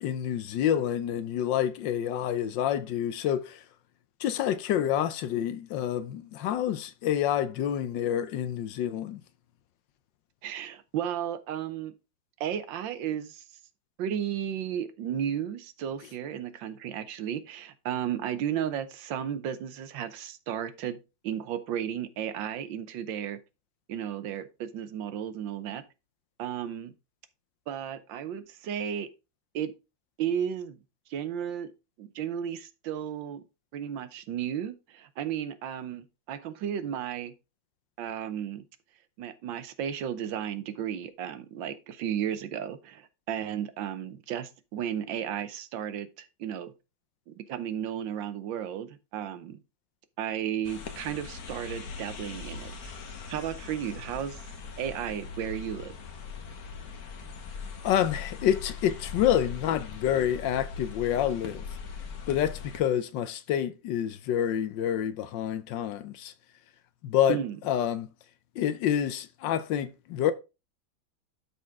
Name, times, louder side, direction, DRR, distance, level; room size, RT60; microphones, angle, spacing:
voice 1, 0.0-3.6 4.2-9.2 57.8-61.6 62.3-66.3 67.0-67.4 67.7-68.1 68.6-70.3, left 10 dB, 75° left, 1.3 m, -28 dB
voice 2, 10.4-11.9 12.4-13.4 14.0-21.0 21.2-23.4 23.9-25.8 26.4-26.9 27.7-29.1 29.5-29.7 30.2-30.8 31.1-31.7 32.0-33.4 33.7-37.3 38.0-38.6 39.2-46.7 47.3-49.6 50.2-52.9 53.3-54.4 54.8-55.9 67.3-67.6, right 9 dB, 75° right, 1.5 m, -34 dB
sound 1, 50.6-62.8, left 5 dB, 55° left, 1.5 m, -40 dB
12.0 x 4.2 x 3.5 m
omnidirectional pair, 2.1 m